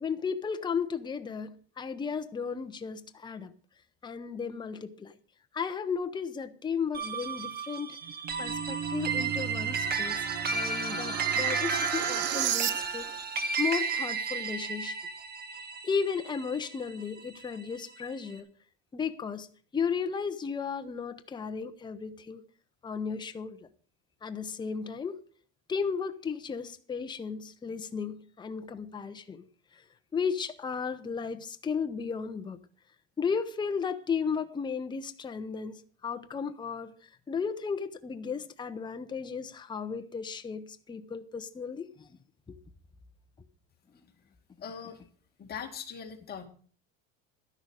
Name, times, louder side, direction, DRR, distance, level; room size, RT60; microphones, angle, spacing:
voice 1, 0.0-3.5 4.0-5.1 5.5-8.0 8.4-13.1 13.6-15.0 15.8-18.5 18.9-19.5 19.7-22.4 22.8-23.6 24.2-25.2 25.7-29.4 30.1-32.6 33.2-36.9 37.3-42.1 42.5-42.6, left 6 dB, 15° left, 0.8 m, -34 dB
sound 1, 6.9-17.6, right 5 dB, 30° right, 1.5 m, -33 dB
sound 2, 8.0-13.2, right 10 dB, 50° right, 0.9 m, -34 dB
voice 2, 44.6-45.0 45.4-46.5, left 7 dB, 30° left, 2.3 m, -40 dB
12.0 x 11.0 x 4.9 m
cardioid pair, 140°, 33 cm